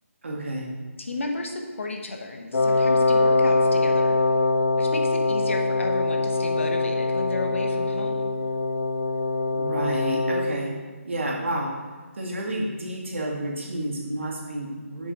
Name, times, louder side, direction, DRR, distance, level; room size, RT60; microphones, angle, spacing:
voice 1, 0.2-0.7 9.5-10.7 11.1-11.7 12.2-15.1, right 1 dB, 55° right, -2 dB, 2.1 m, -30 dB
voice 2, 1.0-4.2 4.8-8.3, left 2 dB, 60° left, 3 dB, 1.2 m, -33 dB
Wind instrument woodwind instrument, 2.5-10.6, left 3 dB, 85° left, 0.9 m, -23 dB
7.7 x 6.5 x 4.2 m, 1.4 s
figure-of-eight pair, 170°, 8 cm